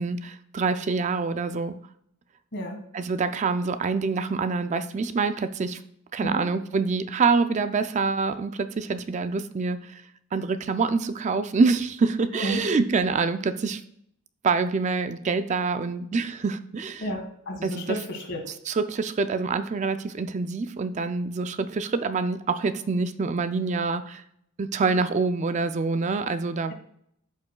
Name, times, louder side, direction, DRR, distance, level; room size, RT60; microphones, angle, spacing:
voice 1, 0.0-1.7 2.9-5.8 6.1-10.0 10.3-13.8 14.4-17.0 17.6-18.0 18.7-24.2 24.6-26.7, right 4 dB, 35° right, 10 dB, 0.3 m, -26 dB
voice 2, 17.0-18.4 26.7-26.8, equal, 55° left, 3 dB, 1.7 m, -32 dB
12.5 x 5.3 x 2.3 m, 0.72 s
head